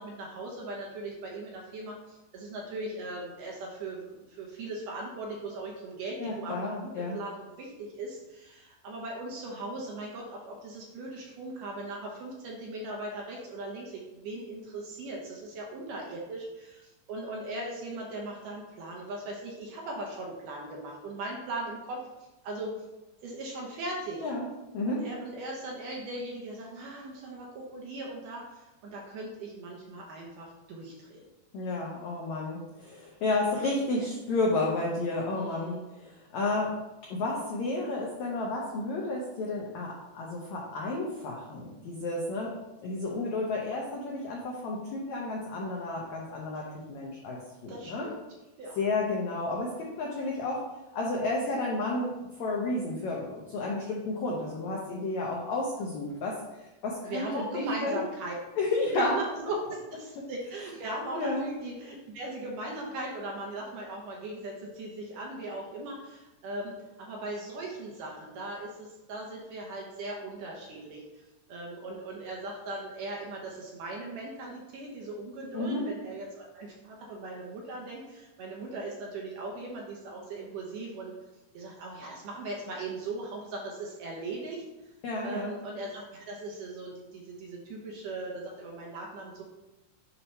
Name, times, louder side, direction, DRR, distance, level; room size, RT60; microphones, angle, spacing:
voice 1, 0.0-22.0 22.4-22.7 23.2-24.2 24.9-31.2 35.3-35.8 46.5-46.6 47.7-48.1 48.6-48.8 57.0-58.3 58.9-81.1 81.5-84.6 85.2-89.4, right 2 dB, 70° right, -2 dB, 2.2 m, -39 dB
voice 2, 6.2-7.2 24.2-24.5 24.7-25.0 31.5-36.8 37.1-42.5 42.8-48.1 48.8-50.6 50.9-52.1 52.4-56.3 56.8-58.0 58.6-59.1 61.1-61.5 75.5-75.8 85.0-85.5, left 2 dB, 80° left, -2 dB, 1.6 m, -31 dB
8.5 x 2.9 x 5.4 m, 1.0 s
omnidirectional pair, 4.5 m